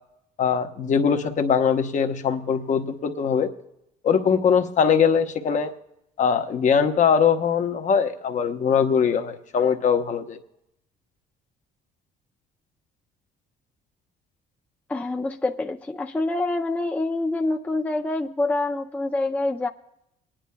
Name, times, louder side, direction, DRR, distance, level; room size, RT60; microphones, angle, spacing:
voice 1, 0.4-3.5 4.0-5.7 6.2-10.4, left 7 dB, 45° left, 6 dB, 1.0 m, -21 dB
voice 2, 14.9-19.7, left 2 dB, 10° left, 3 dB, 0.5 m, -26 dB
27.0 x 10.0 x 2.2 m, 0.83 s
cardioid pair, 110°, 17 cm